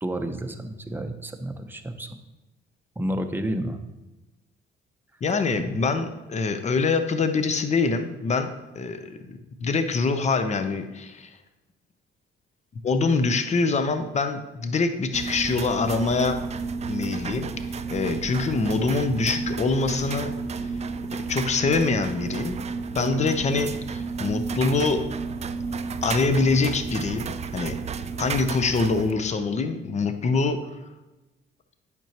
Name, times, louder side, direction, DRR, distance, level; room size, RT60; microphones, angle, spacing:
voice 1, 0.0-2.1 3.0-3.8, right 1 dB, 10° right, 5 dB, 0.8 m, -30 dB
voice 2, 5.2-8.5 8.8-11.3 12.8-16.4 16.9-17.5 17.9-20.3 20.6-20.8 21.3-22.6 22.9-25.0 26.0-27.7 28.2-30.6, left 4 dB, 35° left, 9 dB, 0.7 m, -24 dB
sound 1, 15.1-29.1, right 4 dB, 35° right, 0.4 m, -31 dB
9.0 x 6.0 x 2.9 m, 1.1 s
cardioid pair, 90°, 20 cm